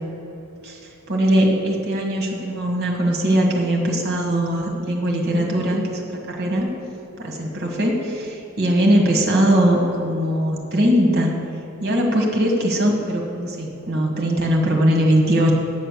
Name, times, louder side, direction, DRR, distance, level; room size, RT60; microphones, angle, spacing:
voice 1, 1.1-6.7 7.2-11.3 11.8-15.6, equal, 45° right, 1 dB, 1.5 m, -20 dB
8.7 x 7.8 x 6.7 m, 3.0 s
head